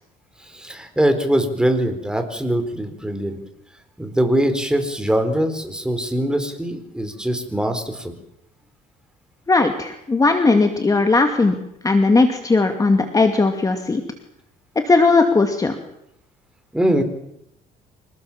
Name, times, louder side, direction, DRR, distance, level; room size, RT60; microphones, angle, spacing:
voice 1, 0.5-3.4 4.0-8.1 16.7-17.0, right 1 dB, 5° right, 7 dB, 4.2 m, -22 dB
voice 2, 9.5-11.5 11.8-14.0 14.9-15.8, left 3 dB, 20° left, 6 dB, 2.4 m, -17 dB
26.5 x 19.5 x 7.4 m, 0.79 s
cardioid pair, 110°, 17 cm